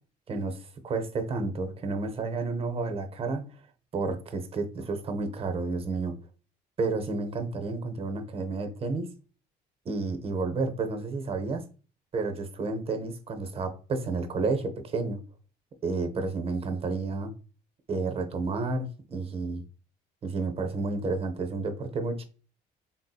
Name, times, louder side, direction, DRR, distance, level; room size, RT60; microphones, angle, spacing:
voice 1, 0.3-3.5 3.9-6.2 6.8-9.1 9.9-11.6 12.1-15.2 15.8-17.3 17.9-19.6 20.2-22.2, right 3 dB, 35° right, 0.6 m, -31 dB
3.5 x 2.7 x 2.2 m
cardioid pair, 110°, 17 cm